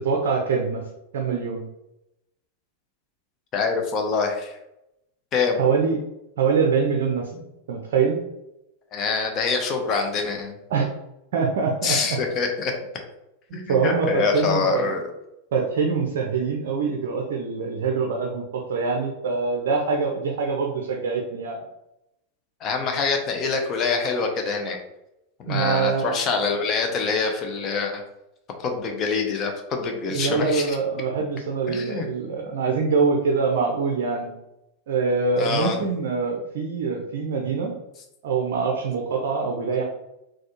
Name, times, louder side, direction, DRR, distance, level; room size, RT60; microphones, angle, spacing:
voice 1, 0.0-0.8 1.1-1.6 5.6-6.0 6.4-8.2 10.7-10.9 11.3-12.2 13.5-14.9 15.5-21.6 25.5-26.1 30.0-34.3 34.9-37.7 38.2-39.8, right 5 dB, 55° right, 1 dB, 0.5 m, -24 dB
voice 2, 3.5-4.6 5.3-5.6 8.9-10.6 11.8-12.7 13.5-15.0 22.6-24.8 25.4-28.0 28.6-30.8 31.7-32.1 35.4-35.8, left 4 dB, 30° left, 3 dB, 0.6 m, -25 dB
4.1 x 2.3 x 3.0 m, 0.89 s
figure-of-eight pair, 90°, 0 cm